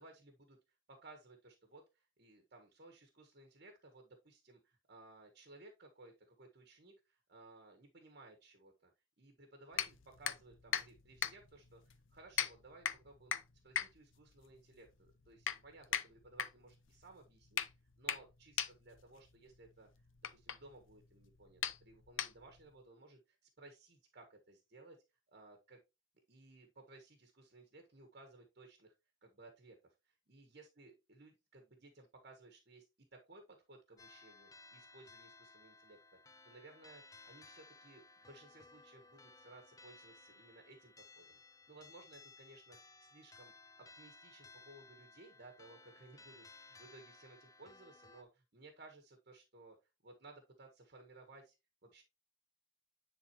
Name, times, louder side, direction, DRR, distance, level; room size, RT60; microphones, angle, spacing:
voice 1, 0.0-8.9 9.2-13.4 13.6-17.6 18.0-19.9 20.3-25.0 25.3-25.8 26.3-28.9 29.2-36.0 36.4-41.4 41.7-43.5 43.8-49.8 50.0-51.5 51.8-52.0, right 2 dB, 50° right, 4 dB, 1.4 m, -59 dB
sound 1, 9.7-22.7, left 9 dB, 75° left, 0.7 m, -42 dB
sound 2, 34.0-48.2, left 3 dB, 20° left, 0.5 m, -60 dB
10.0 x 3.9 x 3.0 m, 0.25 s
head